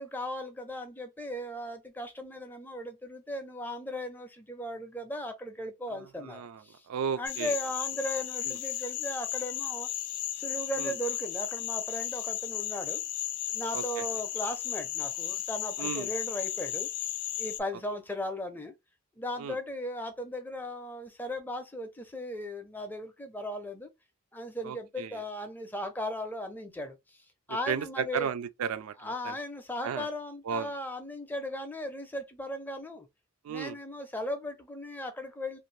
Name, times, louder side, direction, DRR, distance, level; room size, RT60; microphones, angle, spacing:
voice 1, 0.0-6.9 7.2-9.9 10.3-13.0 13.5-18.7 19.2-23.9 24.3-28.3 29.0-33.1 33.5-35.6, left 1 dB, 10° left, 0.4 m, -37 dB
voice 2, 6.2-7.5 8.4-8.6 10.8-10.9 13.7-14.1 15.8-16.1 19.4-19.6 24.6-25.2 27.5-29.4 29.8-30.1 30.4-30.7 33.4-33.8, right 7 dB, 75° right, 0.3 m, -35 dB
sound 1, 7.3-17.6, left 13 dB, 80° left, 0.4 m, -34 dB
2.5 x 2.5 x 3.1 m
head